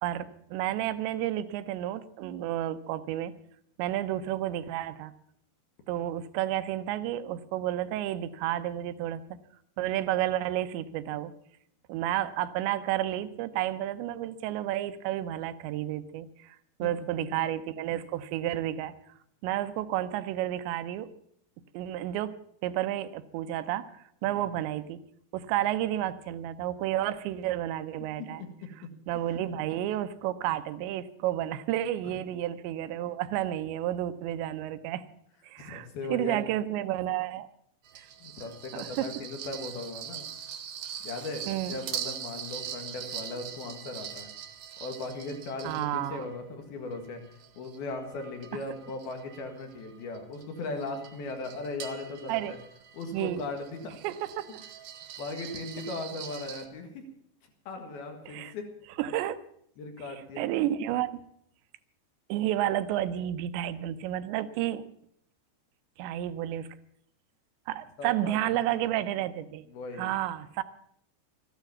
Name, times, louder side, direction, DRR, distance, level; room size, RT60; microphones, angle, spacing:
voice 1, 0.0-3.3 3.8-5.1 5.9-9.2 9.8-11.3 11.9-18.9 19.4-21.1 21.7-22.3 22.6-25.0 25.3-28.4 29.1-35.0 35.4-37.5 38.0-38.1 38.8-39.1 41.5-41.8 45.6-46.3 52.3-52.5 53.1-53.4 54.0-54.6 58.3-58.5 59.0-59.4 60.4-61.2 62.3-64.8 66.0-66.7 67.7-69.6 70.0-70.6, right 13 dB, 85° right, 12 dB, 2.9 m, -31 dB
voice 2, 28.3-28.9 32.0-32.2 35.6-36.4 38.2-40.3 41.0-44.3 44.8-47.2 47.6-52.6 52.9-54.0 54.5-54.6 55.2-57.0 57.7-58.7 59.8-60.5 68.0-68.8 69.7-70.1, left 3 dB, 65° left, 4 dB, 3.4 m, -38 dB
sound 1, 37.8-46.4 46.9-56.7, right 9 dB, 65° right, 2.3 m, -43 dB
13.5 x 11.5 x 7.2 m, 0.69 s
omnidirectional pair, 5.2 m